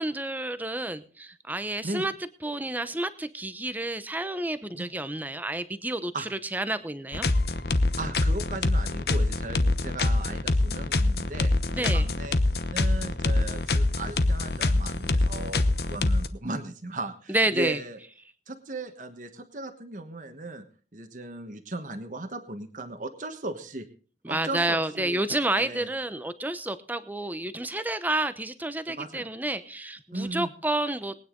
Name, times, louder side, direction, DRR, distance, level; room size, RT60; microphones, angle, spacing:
voice 1, 0.0-2.1 2.4-7.3 11.7-12.0 17.3-17.8 24.2-31.2, right 1 dB, 10° right, 12 dB, 0.8 m, -30 dB
sound 1, 7.1-16.3, left 2 dB, 60° left, 1.0 m, -25 dB
voice 2, 8.0-12.3 12.7-18.0 18.5-20.6 20.9-23.9 24.3-25.2 25.6-25.9 28.9-29.3 30.1-30.5, right 2 dB, 45° right, 6 dB, 1.3 m, -37 dB
21.0 x 9.5 x 3.8 m, 0.40 s
head